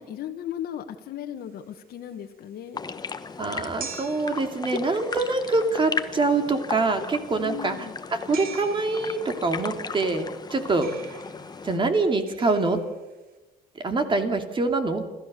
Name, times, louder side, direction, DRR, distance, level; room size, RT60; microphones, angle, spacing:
voice 1, 0.0-2.8 7.4-8.0, left 10 dB, 65° left, 5 dB, 1.5 m, -36 dB
sound 1, 1.4-13.4, right 7 dB, 60° right, 3.9 m, -46 dB
sound 2, 2.7-11.8, left 5 dB, 25° left, 1.1 m, -36 dB
voice 2, 3.4-7.8 8.1-10.9 11.6-12.8 13.8-15.0, right 3 dB, 30° right, 6 dB, 2.6 m, -25 dB
28.5 x 14.0 x 6.8 m, 1.1 s
cardioid pair, 110°, 17 cm